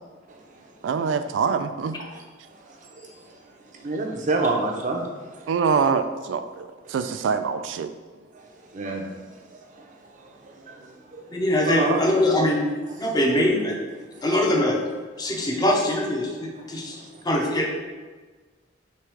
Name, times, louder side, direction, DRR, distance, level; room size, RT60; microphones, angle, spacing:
voice 1, 0.3-1.0 2.1-5.5 6.8-6.9 8.3-11.3 11.6-12.0 13.0-13.2 14.0-14.3 15.3-15.6 16.6-17.2, right 2 dB, 40° right, 1 dB, 0.6 m, -31 dB
voice 2, 0.8-2.0 5.5-7.9, right 5 dB, 80° right, 10 dB, 0.3 m, -24 dB
voice 3, 11.3-12.6 13.0-13.8 14.2-14.8 15.2-17.0 17.2-17.7, left 1 dB, 20° left, 0 dB, 0.7 m, -22 dB
3.4 x 3.2 x 4.8 m, 1.3 s
head